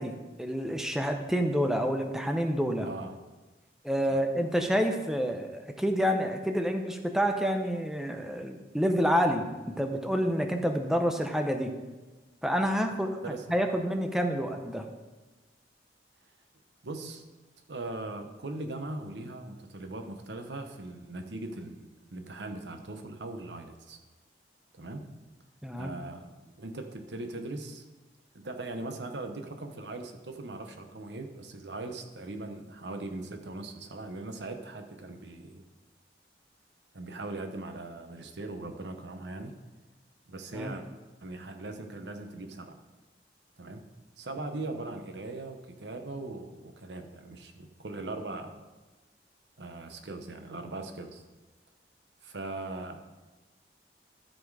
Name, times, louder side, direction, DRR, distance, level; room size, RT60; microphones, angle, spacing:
voice 1, 0.0-2.9 3.8-11.7 12.4-13.2 13.5-14.9 25.6-25.9 40.5-40.7, equal, 5° right, 5 dB, 0.6 m, -28 dB
voice 2, 2.8-3.2 4.1-4.2 13.2-13.6 16.8-17.2 17.7-24.0 24.7-25.1 25.8-26.3 26.6-27.8 28.3-35.6 36.9-39.5 40.3-40.9 41.2-42.8 43.6-43.8 44.2-48.7 49.6-51.2 52.2-53.0, right 2 dB, 85° right, 6 dB, 0.9 m, -40 dB
13.0 x 4.3 x 4.8 m, 1.2 s
head